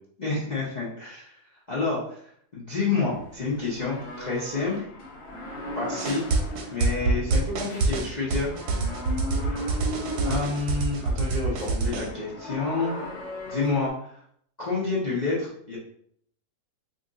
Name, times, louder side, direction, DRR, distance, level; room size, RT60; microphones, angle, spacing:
voice 1, 0.2-1.4 1.7-4.9 5.8-6.2 6.7-8.5 10.2-13.0 13.5-14.2 14.6-15.8, left 4 dB, 50° left, -7 dB, 0.5 m, -29 dB
sound 1, 3.1-13.9, left 1 dB, 70° left, 1.4 m, -37 dB
sound 2, 6.0-12.1, right 3 dB, 75° right, 1.1 m, -26 dB
2.8 x 2.6 x 3.7 m, 0.66 s
omnidirectional pair, 1.8 m